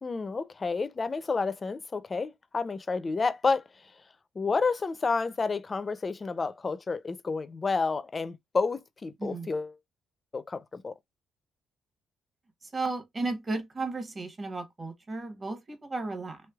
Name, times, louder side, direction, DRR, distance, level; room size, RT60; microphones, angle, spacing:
voice 1, 0.0-3.6 4.4-9.7 10.3-10.9, left 4 dB, 30° left, 0.4 m, -30 dB
voice 2, 12.6-16.4, right 3 dB, 30° right, 0.9 m, -34 dB
3.1 x 3.0 x 2.3 m
cardioid pair, 90°, 0 cm